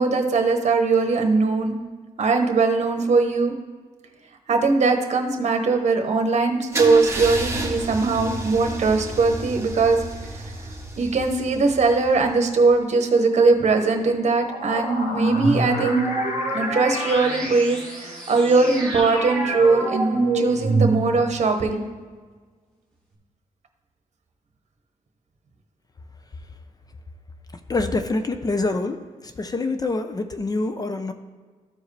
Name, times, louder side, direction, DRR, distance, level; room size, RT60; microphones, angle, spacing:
voice 1, 0.0-1.8 2.2-3.5 4.5-10.0 10.3-10.5 11.0-16.0 16.5-21.8, right 3 dB, 60° right, 5 dB, 1.1 m, -20 dB
Car / Engine starting / Idling, 6.7-12.6, right 2 dB, 20° right, 1.5 m, -31 dB
sound 1, 14.2-18.6, left 2 dB, 65° left, 1.2 m, -34 dB
sound 2, 15.1-21.4, right 3 dB, 5° left, 2.3 m, -25 dB
voice 2, 27.7-29.0 29.4-31.1, left 3 dB, 30° left, 8 dB, 0.5 m, -25 dB
13.5 x 4.6 x 3.3 m, 1.5 s
cardioid pair, 90°, 13 cm